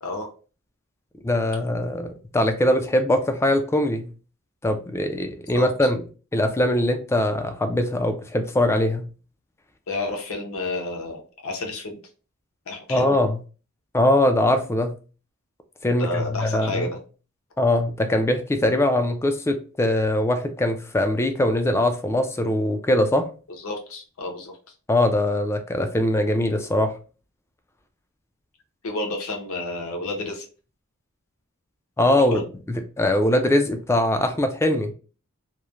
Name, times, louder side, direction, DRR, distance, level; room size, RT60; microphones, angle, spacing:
voice 1, 1.2-4.1 4.6-6.0 6.3-9.1 12.9-13.4 13.9-15.0 15.8-16.9 17.6-23.2 24.9-26.9 32.0-32.4 32.7-34.9, left 1 dB, 10° left, 0.3 m, -22 dB
voice 2, 9.9-12.0 12.7-13.2 16.0-17.0 23.5-24.6 28.8-30.4 32.1-32.4, left 2 dB, 70° left, 0.7 m, -30 dB
3.0 x 2.1 x 2.3 m
head